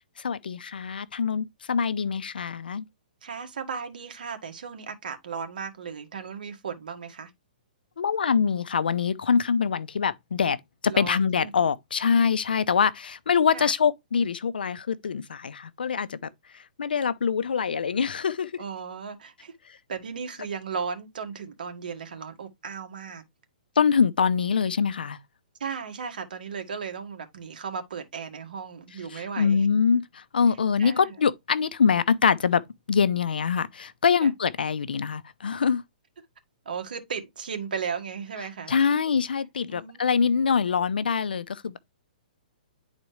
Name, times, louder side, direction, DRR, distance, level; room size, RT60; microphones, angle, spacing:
voice 1, 0.2-2.8 8.0-10.6 10.8-16.2 16.8-18.5 23.8-25.2 29.1-32.6 32.9-35.8 38.7-41.8, left 6 dB, 85° left, 0.7 m, -24 dB
voice 2, 3.2-7.3 10.9-11.7 13.5-13.7 18.6-19.5 19.9-23.2 25.6-29.7 30.8-31.1 34.2-34.3 36.7-38.8 39.7-40.0, right 6 dB, 75° right, 1.7 m, -36 dB
10.5 x 4.1 x 3.2 m
hypercardioid pair, 145°, 5 cm